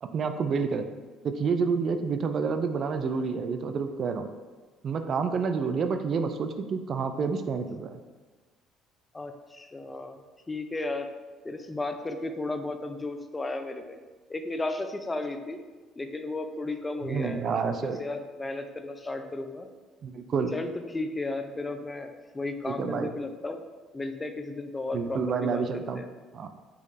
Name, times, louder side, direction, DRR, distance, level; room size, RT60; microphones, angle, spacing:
voice 1, 0.0-0.8 1.2-4.3 4.8-8.0 17.0-18.0 20.0-20.5 22.7-23.1 24.9-26.0 26.3-26.5, right 5 dB, 50° right, 7 dB, 0.3 m, -29 dB
voice 2, 9.1-10.2 10.5-11.1 11.4-14.0 14.3-15.6 16.0-17.6 18.0-19.7 20.5-23.6 23.9-25.6 25.9-26.1, left 2 dB, 20° left, 7 dB, 0.4 m, -34 dB
4.5 x 3.0 x 3.3 m, 1.3 s
hypercardioid pair, 55°, 0 cm